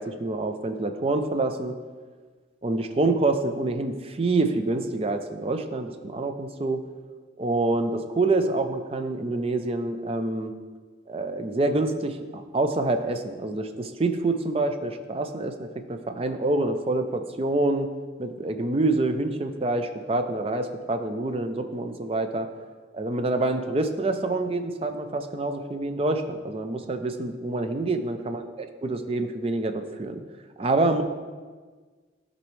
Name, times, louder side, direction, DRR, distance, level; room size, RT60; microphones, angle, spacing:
voice 1, 0.0-1.8 2.6-6.8 7.4-10.5 11.1-17.9 18.2-22.5 22.9-30.2 30.6-31.0, right 2 dB, 30° right, 7 dB, 0.4 m, -26 dB
12.0 x 4.0 x 3.1 m, 1.5 s
head